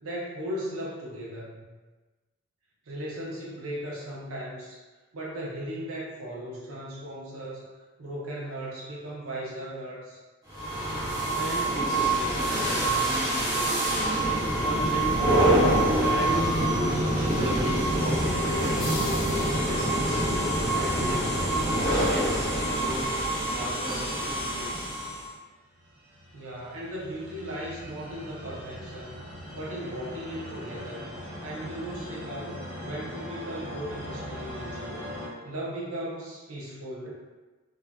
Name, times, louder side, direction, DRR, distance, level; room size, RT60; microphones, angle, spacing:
voice 1, 0.0-1.6 2.9-4.8 5.1-7.7 8.0-10.2 26.3-29.2 29.5-31.1 31.4-35.0 35.4-37.1, right 1 dB, 75° right, -4 dB, 0.5 m, -37 dB
sound 1, 10.5-25.3, right 1 dB, 15° right, 0.7 m, -25 dB
voice 2, 11.3-13.9 14.5-16.7 17.1-18.9 19.4-20.2 20.7-21.4 21.8-25.0, right 1 dB, ahead, -15 dB, 1.2 m, -37 dB
sound 2, 18.6-20.2, left 3 dB, 45° left, 0.3 m, -40 dB
sound 3, 25.6-35.3, equal, 45° right, 1.2 m, -40 dB
2.6 x 2.3 x 2.2 m, 1.2 s
head